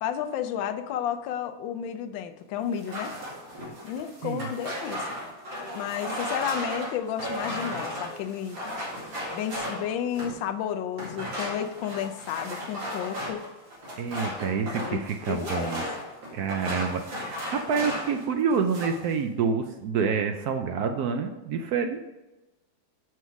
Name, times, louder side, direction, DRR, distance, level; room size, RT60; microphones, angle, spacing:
voice 1, 0.0-3.2 3.8-5.2 5.7-8.7 9.3-13.5 14.6-15.0 15.3-15.7, left 9 dB, 85° left, 8 dB, 1.4 m, -32 dB
sound 1, 2.7-10.4 10.9-18.2 18.5-19.1, equal, 85° right, 2.8 m, -35 dB
voice 2, 14.0-15.8 16.3-22.0, right 6 dB, 70° right, 6 dB, 0.9 m, -28 dB
6.1 x 5.5 x 5.8 m, 1.1 s
omnidirectional pair, 2.0 m